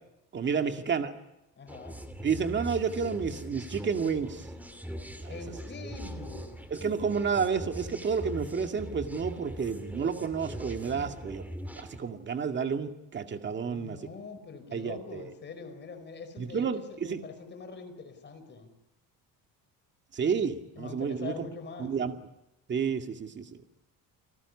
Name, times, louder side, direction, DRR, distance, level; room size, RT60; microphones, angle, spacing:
voice 1, 0.3-1.1 2.2-4.5 5.2-5.4 6.7-11.4 11.8-14.0 14.7-15.3 16.4-17.2 20.1-21.5 21.8-22.1 22.7-23.5, right 6 dB, 30° right, 6 dB, 2.1 m, -30 dB
voice 2, 1.6-2.0 5.3-6.5 13.6-18.7 20.8-21.9, left 4 dB, 30° left, 8 dB, 5.1 m, -44 dB
sound 1, 1.7-12.0, equal, 5° right, 2.6 m, -41 dB
30.0 x 19.0 x 9.8 m, 0.89 s
cardioid pair, 155°, 36 cm